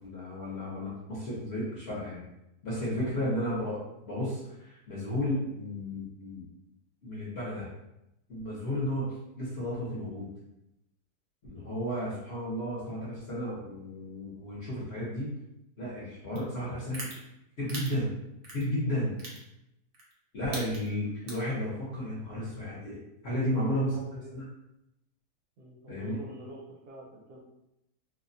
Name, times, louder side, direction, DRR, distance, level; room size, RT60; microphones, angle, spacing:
voice 1, 0.0-2.2 2.6-4.4 4.6-6.4 7.0-7.7 8.3-10.3 11.4-15.3 15.8-17.1 17.6-18.1 18.5-19.1 20.3-23.0 23.2-23.9 24.3-24.4 25.9-26.1, equal, 50° left, -7 dB, 0.8 m, -33 dB
voice 2, 2.7-3.2 11.5-12.1 20.7-20.8 23.5-24.3 25.6-27.4, right 1 dB, 75° right, -3 dB, 1.2 m, -48 dB
sound 1, 16.4-16.5 16.9-17.1 17.7-17.9 18.4-18.6 19.2-19.4 19.9-20.1 20.4-20.9 21.3-21.5, right 2 dB, 55° right, 0.9 m, -39 dB
2.7 x 2.1 x 2.5 m, 0.86 s
omnidirectional pair, 1.7 m